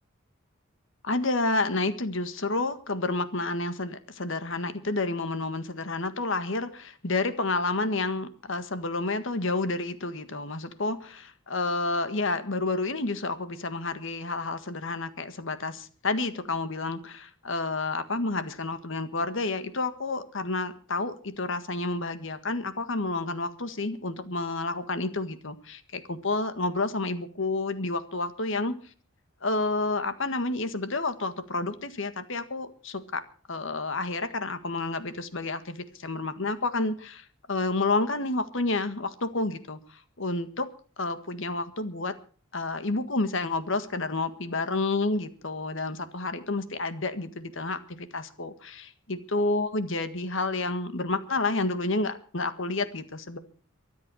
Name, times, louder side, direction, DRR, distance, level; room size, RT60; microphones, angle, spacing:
voice 1, 1.0-28.7 29.4-33.2 33.5-40.7 41.0-42.1 42.5-53.4, left 3 dB, 65° left, 11 dB, 1.7 m, -30 dB
23.5 x 8.3 x 6.3 m, 0.42 s
head